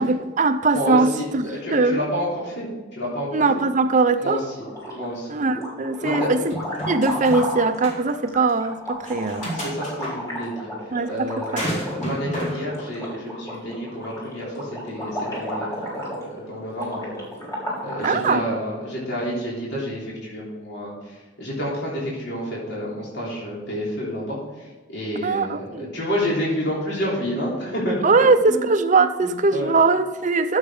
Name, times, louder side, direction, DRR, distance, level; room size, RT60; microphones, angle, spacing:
voice 1, 0.0-2.0 3.3-4.4 5.3-6.5 6.9-9.5 10.9-11.6 18.0-18.5 25.2-25.9 28.0-30.6, right 3 dB, 40° right, 10 dB, 0.6 m, -21 dB
voice 2, 0.7-3.3 3.5-3.6 4.2-4.4 4.9-5.3 6.0-6.5 7.1-7.2 9.5-10.7 11.1-17.1 17.8-28.6 29.2-29.7, equal, 60° left, -6 dB, 3.5 m, -29 dB
sound 1, 4.6-5.2 5.5-18.2, equal, 15° left, 2.9 m, -33 dB
sound 2, 6.5-7.5 7.8-8.0 9.0-10.1 11.6-12.6, right 1 dB, 40° left, 2.8 m, -31 dB
12.0 x 7.3 x 3.8 m, 1.3 s
head